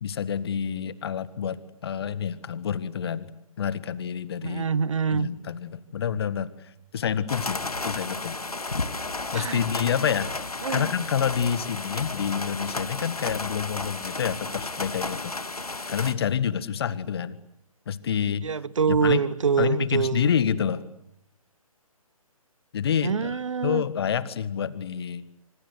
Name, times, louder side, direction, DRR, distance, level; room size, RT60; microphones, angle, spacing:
voice 1, 0.0-3.3 3.6-4.7 5.1-8.4 9.3-10.3 10.7-15.3 15.9-17.4 17.9-18.5 18.9-19.2 19.6-20.8 22.7-25.2, left 8 dB, 45° left, 1.8 m, -28 dB
voice 2, 4.4-5.3 9.3-9.6 10.6-10.9 18.4-20.3 23.0-23.8, right 6 dB, 60° right, 1.1 m, -25 dB
sound 1, 7.3-16.1, left 3 dB, 80° left, 2.2 m, -33 dB
26.5 x 26.0 x 8.2 m
figure-of-eight pair, 140°, 19 cm